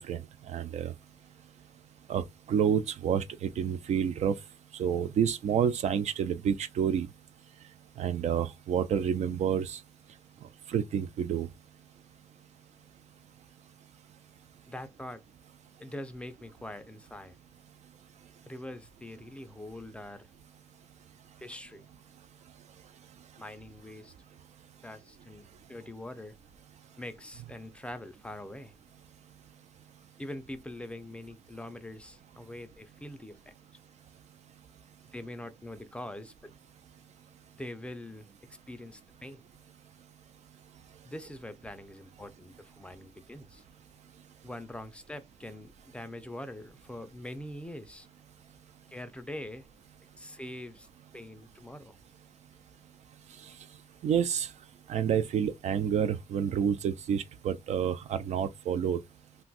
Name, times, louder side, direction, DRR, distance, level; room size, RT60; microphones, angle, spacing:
voice 1, 0.5-0.9 2.1-2.2 2.5-4.3 4.8-7.1 8.0-9.8 10.7-11.5 54.0-54.5 54.9-59.0, right 8 dB, 70° right, 0.4 m, -28 dB
voice 2, 14.7-15.2 15.8-17.4 18.5-20.3 21.4-21.9 23.4-24.1 24.8-26.4 27.0-28.7 30.2-33.5 35.1-36.5 37.5-38.3 38.7-39.4 41.0-43.6 44.4-48.1 48.9-49.7 50.2-50.9 51.1-52.0, left 1 dB, 10° left, 0.4 m, -43 dB
2.5 x 2.2 x 3.9 m
wide cardioid pair, 135°, 12 cm